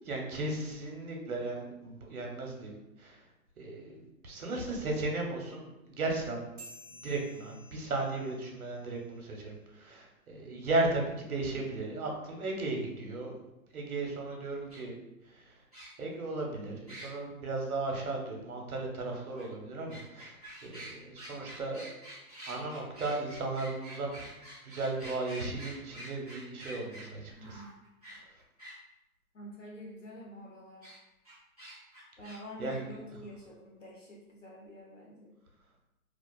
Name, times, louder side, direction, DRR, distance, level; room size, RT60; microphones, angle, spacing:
voice 1, 0.0-3.2 3.6-6.5 6.9-13.4 13.7-15.0 15.2-15.6 16.0-20.4 20.6-21.9 22.4-24.3 24.6-27.6 32.6-32.8, right 2 dB, 70° right, 1 dB, 0.8 m, -35 dB
sound 1, 6.6-9.4, equal, 10° left, 0.8 m, -54 dB
sound 2, 14.7-14.8 15.7-16.1 16.9-17.1 19.4-19.5 19.9-28.7 30.8-31.0 31.2-32.4 32.7-32.8, right 1 dB, 25° right, 0.5 m, -47 dB
voice 2, 27.4-27.7 29.3-30.9 32.2-35.3, equal, 60° left, -3 dB, 0.6 m, -47 dB
2.4 x 2.4 x 2.3 m, 0.92 s
hypercardioid pair, 180°, 44 cm